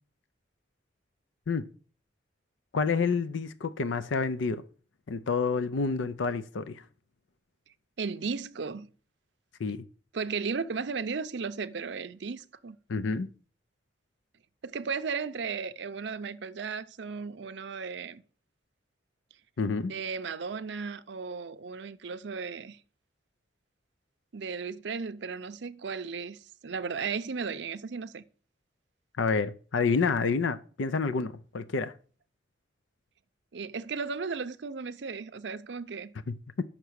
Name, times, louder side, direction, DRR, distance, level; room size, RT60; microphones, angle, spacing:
voice 1, 2.7-4.6 5.1-6.8 9.6-9.8 12.9-13.3 19.6-19.9 29.2-31.9 36.3-36.7, left 4 dB, 80° left, 0.5 m, -28 dB
voice 2, 8.0-8.9 10.1-12.8 14.6-18.2 19.9-22.8 24.3-28.2 33.5-36.1, right 5 dB, 65° right, 0.5 m, -35 dB
6.8 x 5.9 x 6.3 m
head